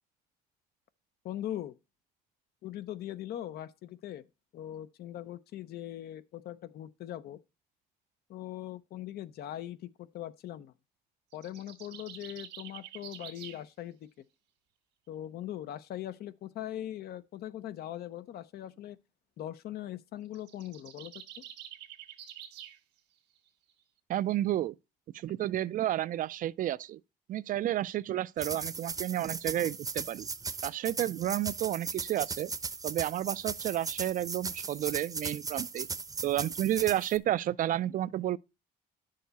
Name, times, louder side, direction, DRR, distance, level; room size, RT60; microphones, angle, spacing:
voice 1, 1.2-1.8 2.6-4.2 4.5-7.4 8.3-10.7 11.3-14.1 15.1-19.0 19.4-21.4, left 12 dB, 65° left, 0.8 m, -41 dB
sound 1, 11.3-13.6 20.2-22.8, right 11 dB, 90° right, 1.7 m, -47 dB
voice 2, 24.1-24.7 25.1-27.0 27.3-30.3 30.6-32.5 32.8-35.9 36.2-38.4, right 13 dB, 55° right, 0.4 m, -31 dB
sound 2, 28.4-37.2, right 4 dB, 20° right, 0.7 m, -37 dB
10.5 x 6.6 x 4.1 m
cardioid pair, 110°, 17 cm